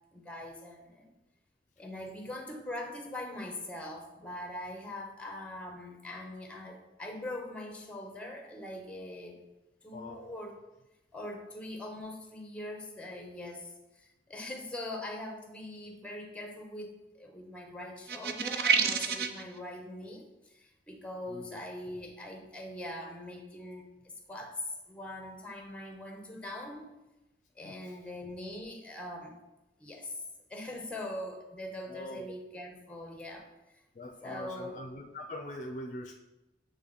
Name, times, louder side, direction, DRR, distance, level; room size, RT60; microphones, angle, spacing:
voice 1, 0.1-1.2 1.8-9.4 9.8-10.6 11.1-26.9 27.6-29.4 29.8-30.2 30.5-33.8 34.2-34.8, left 1 dB, 5° left, 3 dB, 0.7 m, -42 dB
voice 2, 9.9-10.3 21.3-21.6 27.6-28.0 31.9-32.2 33.9-36.1, left 1 dB, 45° left, 4 dB, 0.4 m, -43 dB
sound 1, 18.1-19.4, right 6 dB, 55° right, 0.5 m, -28 dB
8.2 x 3.2 x 3.9 m, 1.0 s
head